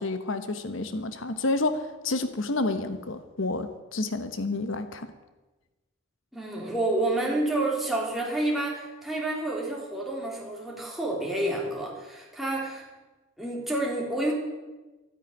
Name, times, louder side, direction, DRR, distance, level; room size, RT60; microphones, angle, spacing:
voice 1, 0.0-5.1, left 2 dB, 80° left, 10 dB, 1.1 m, -29 dB
voice 2, 6.3-12.8 13.4-14.3, right 2 dB, ahead, -3 dB, 3.6 m, -29 dB
13.5 x 9.6 x 9.8 m, 1.1 s
head